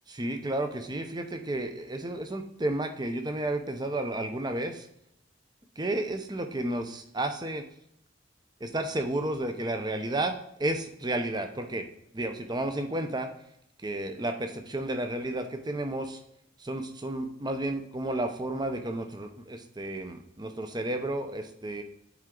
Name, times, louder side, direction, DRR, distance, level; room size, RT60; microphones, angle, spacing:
voice 1, 0.1-4.9 5.8-7.6 8.6-10.3 10.6-11.9 12.1-13.3 13.8-16.2 16.6-21.8, right 1 dB, 20° right, 6 dB, 0.7 m, -32 dB
10.5 x 4.6 x 3.9 m, 0.76 s
head